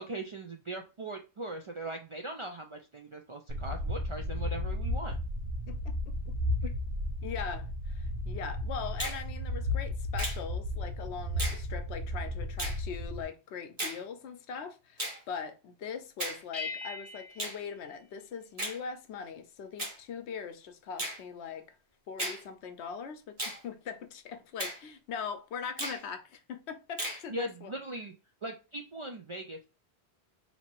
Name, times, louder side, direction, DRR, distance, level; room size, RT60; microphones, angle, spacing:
voice 1, 0.0-5.2 6.6-6.7 27.3-28.1 28.4-29.7, right 2 dB, 50° right, 0.3 m, -40 dB
sound 1, 3.5-13.2, left 1 dB, 70° right, 1.0 m, -34 dB
voice 2, 5.7-6.3 7.2-21.8 22.1-27.7, left 6 dB, 80° left, 0.9 m, -41 dB
Finger snapping, 9.0-9.2 10.2-10.4 11.4-11.6 12.6-12.8 13.8-14.0 15.0-15.2 16.2-16.4 17.4-17.6 18.6-18.8 19.8-20.0 21.0-21.2 22.2-22.4 23.4-23.6 24.6-24.8 25.8-26.0 27.0-27.2, right 1 dB, 35° right, 1.4 m, -35 dB
sound 2, 16.5-18.7, left 3 dB, 60° left, 0.7 m, -42 dB
2.9 x 2.8 x 4.4 m
omnidirectional pair, 1.1 m